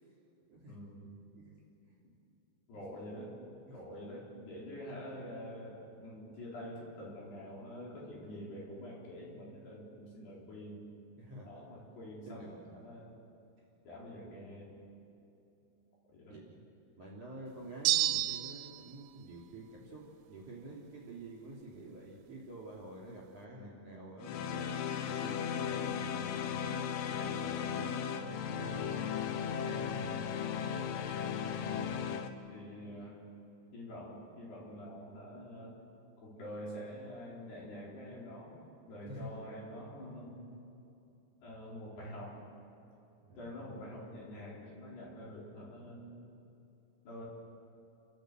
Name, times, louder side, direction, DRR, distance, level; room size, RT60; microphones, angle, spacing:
voice 1, 0.7-1.1 2.7-3.4 3.7-10.9 11.4-13.1 13.9-14.7 16.1-16.4 23.5-23.9 32.5-33.2 33.7-35.7 36.2-38.6 38.9-40.4 41.4-42.4 43.4-46.1 47.0-47.2, equal, 60° left, -5 dB, 6.1 m, -46 dB
voice 2, 11.1-11.5 12.3-12.5 16.3-16.6 17.0-26.7 27.0-30.3 31.8-32.2 39.1-39.3 43.2-43.7, right 2 dB, 35° right, -2 dB, 4.0 m, -49 dB
sound 1, 17.8-18.8, right 15 dB, 85° right, 3.1 m, -29 dB
sound 2, 24.2-32.3, left 8 dB, 90° left, 2.0 m, -36 dB
29.5 x 14.0 x 7.8 m, 2.8 s
omnidirectional pair, 5.4 m